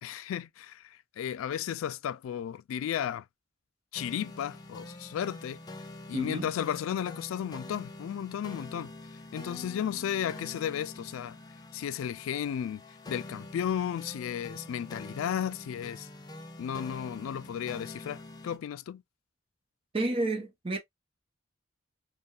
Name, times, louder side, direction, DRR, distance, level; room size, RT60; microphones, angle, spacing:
voice 1, 0.0-3.2 3.9-5.6 6.1-8.9 9.3-11.4 11.7-12.8 13.1-16.1 16.6-19.0, left 9 dB, 90° left, 0.3 m, -34 dB
sound 1, 3.9-18.6, left 2 dB, 20° left, 0.4 m, -46 dB
voice 2, 6.1-6.5 19.9-20.8, right 2 dB, 30° right, 0.7 m, -30 dB
3.7 x 2.2 x 2.3 m
head